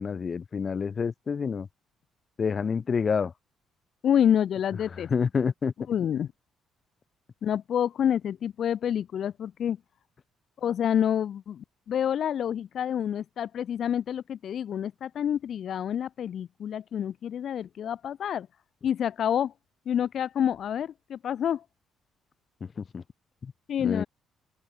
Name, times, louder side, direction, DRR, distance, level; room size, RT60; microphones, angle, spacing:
voice 1, 0.0-1.7 2.4-3.3 4.9-5.7 22.6-23.0 23.4-23.5 23.8-24.0, left 6 dB, 45° left, 0.5 m, -28 dB
voice 2, 4.0-5.1 5.9-6.3 7.4-9.8 10.6-18.5 18.8-19.5 19.9-21.6 23.7-24.1, left 9 dB, 60° left, 1.1 m, -28 dB
open air
hypercardioid pair, 55°, 0 cm